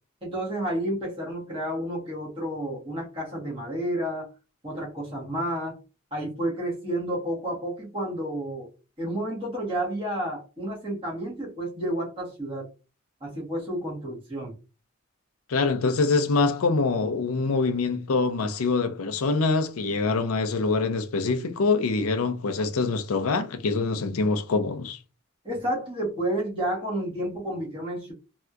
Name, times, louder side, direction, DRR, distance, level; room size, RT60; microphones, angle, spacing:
voice 1, 0.2-4.3 4.6-5.8 6.1-8.7 9.0-12.7 13.2-14.5 25.4-28.1, right 1 dB, 25° right, 1.4 m, -30 dB
voice 2, 15.5-25.0, left 3 dB, 90° left, 0.5 m, -25 dB
3.3 x 2.8 x 2.3 m
head